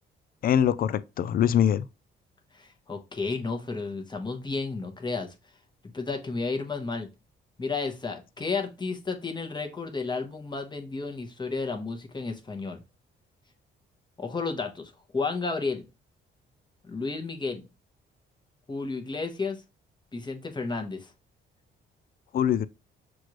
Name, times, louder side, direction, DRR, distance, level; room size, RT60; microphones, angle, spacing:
voice 1, 0.4-1.8 22.3-22.7, left 9 dB, 50° left, 0.4 m, -23 dB
voice 2, 2.5-5.3 5.9-7.1 7.6-12.8 14.2-15.9 16.8-17.6 18.7-19.6 20.1-21.1, left 4 dB, 20° left, 1.0 m, -32 dB
6.1 x 2.5 x 3.0 m
cardioid pair, 90°, 20 cm